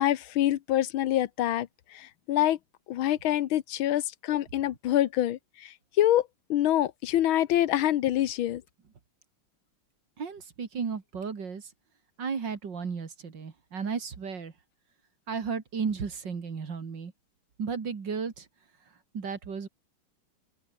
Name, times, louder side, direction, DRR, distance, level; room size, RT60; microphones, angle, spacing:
voice 1, 0.0-1.7 1.9-2.6 2.9-8.6, left 12 dB, 80° left, 1.7 m, -26 dB
voice 2, 10.2-11.7 12.2-14.5 15.3-17.1 17.6-18.5 19.1-19.7, right 5 dB, 60° right, 3.0 m, -34 dB
open air
omnidirectional pair, 2.2 m